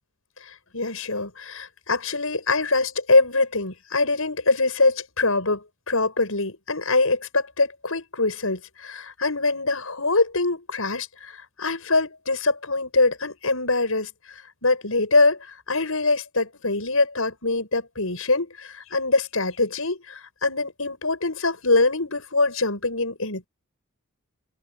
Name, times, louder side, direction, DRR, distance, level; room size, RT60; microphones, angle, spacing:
voice 1, 0.7-14.1 14.6-15.4 15.7-23.5, left 3 dB, 80° left, 7.7 m, -23 dB
head